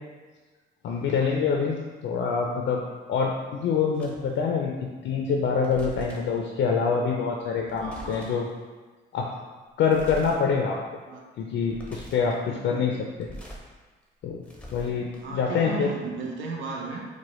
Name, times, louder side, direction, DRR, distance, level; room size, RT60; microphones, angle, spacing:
voice 1, 0.8-2.8 3.1-8.5 9.1-9.3 9.8-10.8 11.4-13.3 14.2-14.4 14.7-15.9, left 5 dB, 65° left, 0 dB, 0.4 m, -26 dB
sound 1, 3.9-4.4 5.4-6.4 7.5-8.5 9.9-10.4 10.8-10.9 11.6-12.4 13.0-13.7 14.0-15.4, equal, 5° left, 0.7 m, -43 dB
voice 2, 7.8-8.5 11.1-11.3 12.5-12.8 15.2-17.0, right 4 dB, 80° right, -1 dB, 0.6 m, -35 dB
4.6 x 2.2 x 2.9 m, 1.3 s
cardioid pair, 90°, 20 cm